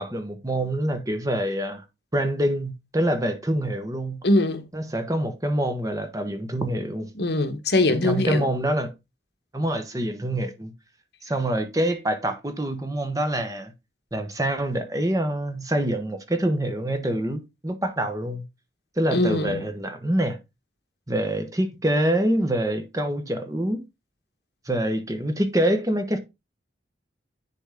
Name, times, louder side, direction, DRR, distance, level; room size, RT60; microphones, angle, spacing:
voice 1, 0.0-1.8 2.1-4.2 4.7-7.1 8.0-8.9 9.5-10.7 11.2-13.7 14.1-18.4 19.0-20.4 21.1-23.8 24.6-26.2, right 1 dB, 20° right, 1.1 m, -26 dB
voice 2, 4.2-4.7 7.1-8.5 19.1-19.6, left 2 dB, 65° left, 1.2 m, -22 dB
10.5 x 4.1 x 3.7 m
head